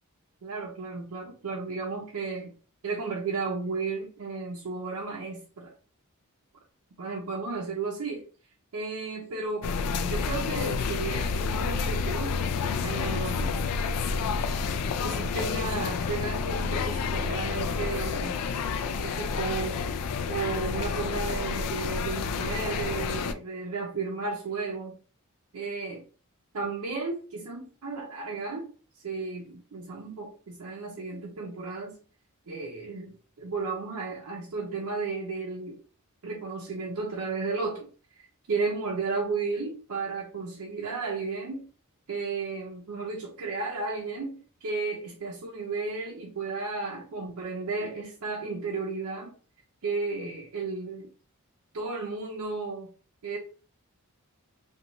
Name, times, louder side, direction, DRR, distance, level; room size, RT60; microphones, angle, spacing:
voice 1, 0.4-2.5 2.8-5.7 7.0-8.2 8.7-9.7 10.0-12.4 12.8-13.6 14.5-14.6 15.0-18.3 19.0-19.8 20.3-25.0 25.5-26.0 26.5-28.7 29.0-32.0 32.5-35.8 36.2-37.9 38.2-41.7 42.1-49.3 49.8-51.1 51.7-52.9 53.2-53.4, right 4 dB, 70° right, -2 dB, 0.5 m, -33 dB
sound 1, 9.6-23.3, left 5 dB, 85° left, 0.3 m, -29 dB
2.9 x 2.3 x 2.5 m, 0.39 s
head